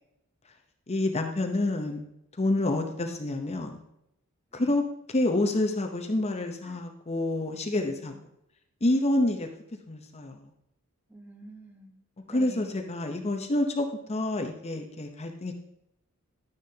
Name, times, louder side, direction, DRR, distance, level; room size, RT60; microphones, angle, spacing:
voice 1, 0.9-2.1 2.4-3.8 4.5-4.8 5.1-8.1 8.8-9.5 9.9-10.4 12.3-15.5, left 2 dB, 30° left, 5 dB, 0.8 m, -28 dB
voice 2, 7.6-8.2 11.1-12.8, right 1 dB, 10° right, 3 dB, 1.1 m, -48 dB
11.5 x 10.0 x 2.8 m, 0.81 s
head